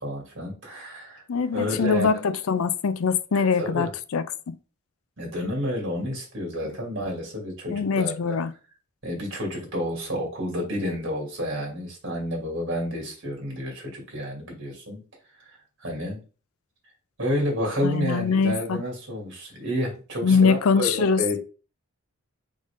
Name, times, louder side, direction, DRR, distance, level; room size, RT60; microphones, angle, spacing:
voice 1, 0.0-1.2 1.5-2.1 3.3-3.9 5.2-8.4 9.0-15.0 15.8-16.2 17.2-21.4, equal, 55° right, 2.3 m, -30 dB
voice 2, 1.3-2.2 2.5-4.5 7.7-8.5 17.8-18.8 20.2-21.2, left 5 dB, 75° left, 0.4 m, -23 dB
4.0 x 3.7 x 3.6 m
head